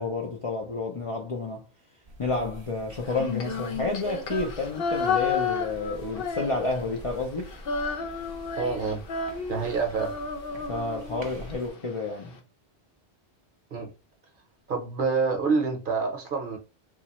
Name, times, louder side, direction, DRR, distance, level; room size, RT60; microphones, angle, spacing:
voice 1, 0.0-1.6 2.2-7.5 10.7-12.4, left 3 dB, 45° left, 0.4 m, -30 dB
sound 1, 2.0-11.7, right 1 dB, 35° right, 0.5 m, -46 dB
Female singing, 3.1-7.0 7.2-11.5, left 5 dB, 65° left, 0.8 m, -31 dB
voice 2, 8.6-9.0 9.5-10.1 13.7-13.9 14.7-16.6, right 4 dB, 55° right, 0.8 m, -27 dB
3.0 x 2.3 x 2.9 m
omnidirectional pair, 1.1 m